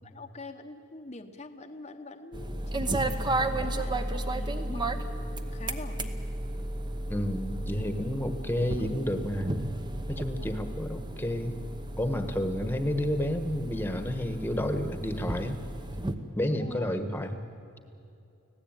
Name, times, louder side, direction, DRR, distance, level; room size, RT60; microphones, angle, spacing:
voice 1, 0.0-6.1 7.7-8.1 8.4-8.5 10.4-10.7 16.5-17.1, left 2 dB, 30° left, 5 dB, 0.9 m, -45 dB
sound 1, 2.3-16.1, right 1 dB, 20° right, 0.9 m, -33 dB
voice 2, 7.1-9.6 10.1-11.6 12.0-15.6 16.4-17.4, left 1 dB, 10° left, 8 dB, 1.3 m, -30 dB
25.0 x 17.0 x 9.0 m, 2.5 s
head